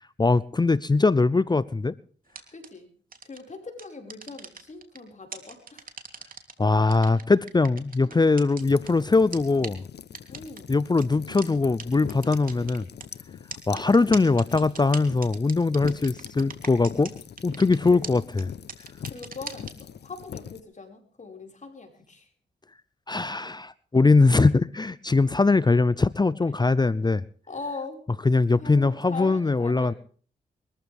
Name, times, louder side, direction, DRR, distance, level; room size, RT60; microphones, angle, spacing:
voice 1, 0.2-1.9 6.6-9.8 10.7-12.9 13.7-17.1 17.4-18.5 23.1-27.2 28.3-29.9, left 3 dB, 25° left, 19 dB, 0.6 m, -21 dB
sound 1, 2.3-2.7 3.1-3.4 3.8-5.0 5.3-6.5 6.9-8.9 9.3-9.4 9.6-9.7 10.1-10.6 11.0-11.1 11.4-11.5 11.8-11.9 12.1-13.0 13.5-17.1 17.4-17.8 18.0-18.1 18.4-18.5 18.7-19.7, right 5 dB, 50° right, 3.2 m, -39 dB
voice 2, 2.5-2.9 3.2-5.9 10.3-10.8 17.9-18.0 19.1-22.3 27.5-28.0 28.6-30.0, left 3 dB, 45° left, 3 dB, 5.5 m, -40 dB
sound 2, 8.6-20.6, left 8 dB, 70° left, 0.9 m, -42 dB
23.0 x 14.5 x 3.6 m, 0.43 s
cardioid pair, 60°, 18 cm